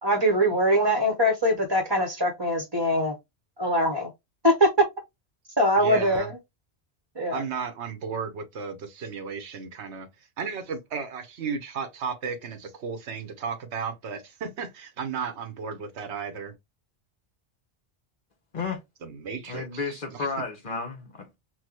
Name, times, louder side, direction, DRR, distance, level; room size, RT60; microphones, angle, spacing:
voice 1, 0.0-3.2 3.6-4.1 4.4-4.7 5.6-6.3 7.2-7.4, equal, 25° right, 0.9 m, -22 dB
voice 2, 5.8-6.3 7.3-10.1 10.4-16.5 19.0-20.3, right 5 dB, 85° right, 1.2 m, -34 dB
voice 3, 19.5-21.4, left 4 dB, 50° left, 1.2 m, -32 dB
6.1 x 2.2 x 3.0 m
omnidirectional pair, 1.1 m